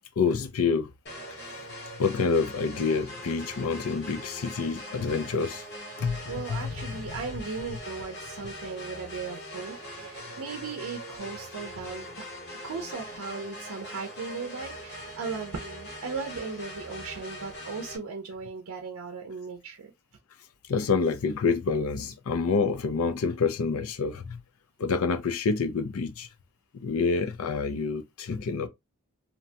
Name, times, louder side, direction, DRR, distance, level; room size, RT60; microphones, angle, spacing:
voice 1, 0.2-0.9 2.0-5.6 6.0-6.2 6.5-7.0 20.7-24.4 24.8-26.3 26.8-28.7, left 4 dB, 85° left, 0.5 m, -27 dB
sound 1, 1.1-18.0, equal, 50° left, 0.9 m, -41 dB
voice 2, 6.3-12.2 12.6-19.9 22.4-22.5, right 4 dB, 90° right, 0.5 m, -37 dB
2.8 x 2.2 x 2.7 m
head